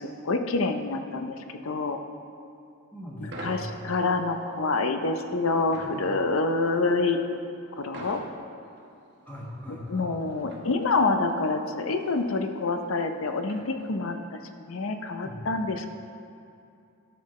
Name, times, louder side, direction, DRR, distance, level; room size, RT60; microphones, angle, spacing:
voice 1, 0.0-1.4 1.6-2.0 3.2-7.2 7.8-8.2 9.9-14.2 14.7-15.9, left 3 dB, 65° left, 7 dB, 0.6 m, -27 dB
voice 2, 2.9-3.7 5.8-5.9 9.3-10.1 15.2-15.4, equal, 10° left, -4 dB, 1.4 m, -40 dB
sound 1, 3.3-14.2, right 2 dB, 50° right, 1.0 m, -47 dB
13.0 x 6.6 x 3.2 m, 2.6 s
head